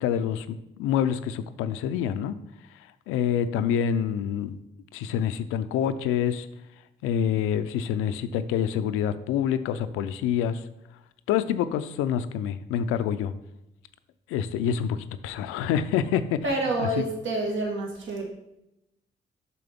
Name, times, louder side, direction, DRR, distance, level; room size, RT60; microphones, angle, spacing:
voice 1, 0.0-2.4 3.1-4.6 4.9-6.5 7.0-10.6 11.3-13.3 14.3-15.0 15.2-17.1, left 9 dB, 85° left, 12 dB, 0.4 m, -27 dB
voice 2, 16.4-18.3, right 2 dB, 65° right, 0 dB, 1.7 m, -28 dB
6.8 x 6.1 x 3.5 m, 0.87 s
supercardioid pair, 50°, 21 cm